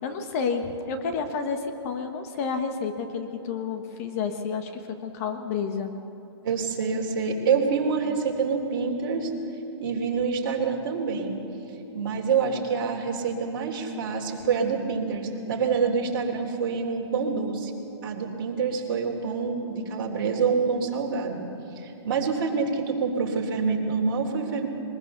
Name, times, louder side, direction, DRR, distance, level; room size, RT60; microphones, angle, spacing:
voice 1, 0.0-5.9, left 5 dB, 30° left, 6 dB, 1.3 m, -30 dB
voice 2, 6.4-9.3 9.8-11.4 11.9-17.7 18.0-21.4 21.7-24.7, right 5 dB, 45° right, 1 dB, 3.3 m, -26 dB
22.5 x 21.0 x 6.8 m, 3.0 s
hypercardioid pair, 165°, 15 cm